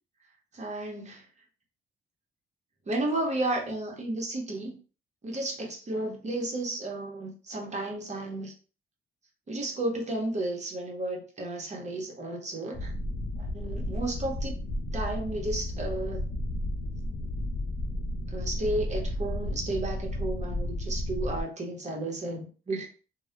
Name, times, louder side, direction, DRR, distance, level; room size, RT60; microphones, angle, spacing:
voice 1, 0.5-1.2 2.9-4.8 5.2-8.5 9.5-12.9 13.4-14.6 14.9-16.2 18.3-22.9, right 2 dB, 35° right, 1 dB, 0.8 m, -33 dB
sound 1, 12.7-21.4, left 1 dB, 40° left, 0.5 m, -33 dB
2.2 x 2.0 x 2.8 m, 0.36 s
cardioid pair, 95°, 20 cm